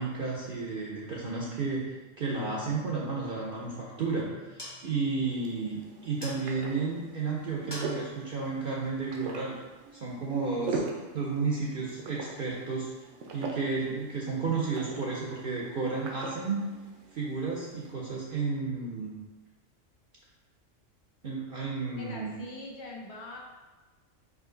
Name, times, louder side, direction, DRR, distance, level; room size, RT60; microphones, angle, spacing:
voice 1, 0.0-1.8 2.2-9.6 9.9-10.8 11.1-12.9 13.3-16.6 17.1-19.1 21.2-22.3, right 4 dB, 55° right, -3 dB, 0.7 m, -32 dB
sound 1, 2.3-5.8, left 11 dB, 80° left, 1.1 m, -49 dB
sound 2, 4.4-9.8, left 1 dB, 25° left, 0.6 m, -49 dB
sound 3, 5.0-17.9, right 3 dB, 75° right, 1.0 m, -42 dB
voice 2, 22.0-23.4, left 2 dB, 60° left, -2 dB, 1.1 m, -42 dB
4.9 x 2.8 x 3.8 m, 1.2 s
omnidirectional pair, 1.3 m